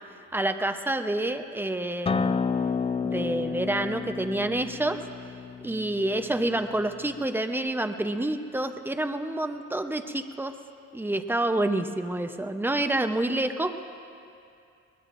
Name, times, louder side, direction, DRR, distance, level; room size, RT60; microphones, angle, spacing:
voice 1, 0.3-2.4 3.0-5.0 5.6-10.5 10.9-13.8, right 1 dB, 5° right, 7 dB, 0.7 m, -28 dB
Acoustic guitar, 2.1-7.3, left 5 dB, 20° left, 0.4 m, -31 dB
22.0 x 20.0 x 2.6 m, 2.5 s
cardioid pair, 90°, 30 cm